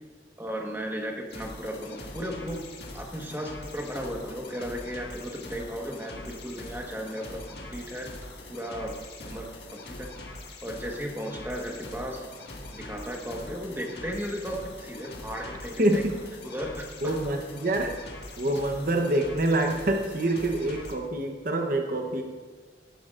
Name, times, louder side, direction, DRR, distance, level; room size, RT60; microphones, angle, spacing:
voice 1, 0.4-2.7 2.9-8.1 8.5-10.1 10.6-12.2 12.7-16.0 16.4-17.2 18.5-18.6, equal, 15° right, 0 dB, 1.4 m, -35 dB
sound 1, 1.3-20.9, left 2 dB, 65° left, 1.9 m, -43 dB
voice 2, 15.8-16.2 17.0-17.9 18.4-22.2, right 1 dB, 50° right, 3 dB, 1.0 m, -26 dB
17.5 x 12.0 x 2.5 m, 1.5 s
head